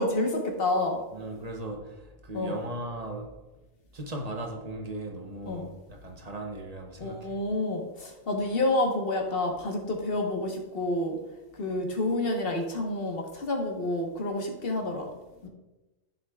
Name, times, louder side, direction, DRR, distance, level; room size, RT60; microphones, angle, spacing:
voice 1, 0.0-1.0 2.3-2.5 5.5-5.7 7.0-11.2 11.6-15.1 15.4-15.5, left 2 dB, 45° left, 1.4 m, -29 dB
voice 2, 1.1-3.4 3.9-7.4, right 1 dB, 35° right, 0.8 m, -38 dB
13.0 x 6.9 x 2.3 m
omnidirectional pair, 1.4 m